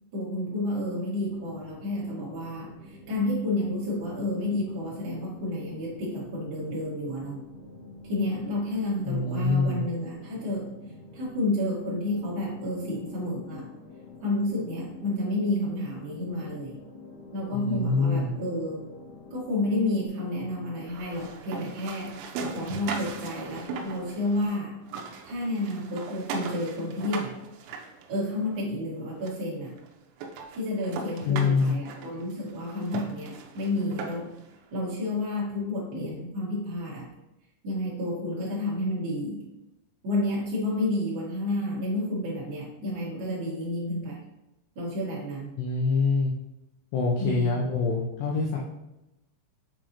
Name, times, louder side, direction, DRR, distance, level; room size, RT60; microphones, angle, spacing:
voice 1, 0.1-7.4 8.0-10.7 11.1-13.7 14.2-16.8 17.3-18.8 19.3-22.1 22.5-24.7 25.2-27.3 28.1-29.7 30.5-34.3 34.7-37.1 37.6-39.4 40.0-44.2 44.7-45.5 47.2-47.5, left 1 dB, 65° right, -7 dB, 1.2 m, -30 dB
sound 1, 1.2-20.1, left 2 dB, 70° left, 3.3 m, -48 dB
voice 2, 9.1-9.8 17.5-18.3 31.2-31.8 45.6-46.3 46.9-48.6, left 4 dB, 90° left, -2 dB, 2.4 m, -25 dB
sound 2, 20.9-24.6 24.8-28.6 29.3-29.4 29.8-29.9 30.2-34.4, right 4 dB, 85° right, 2.7 m, -38 dB
7.5 x 4.9 x 2.9 m, 0.93 s
omnidirectional pair, 6.0 m